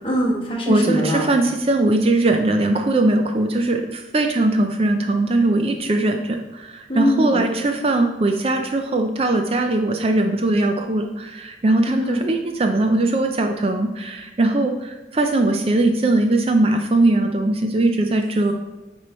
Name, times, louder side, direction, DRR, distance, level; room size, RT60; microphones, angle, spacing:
voice 1, 0.0-1.3 6.9-7.4 11.9-12.2, equal, 30° left, -1 dB, 1.2 m, -22 dB
voice 2, 0.7-18.5, right 2 dB, 30° right, 5 dB, 0.4 m, -20 dB
9.3 x 3.2 x 4.2 m, 1.1 s
head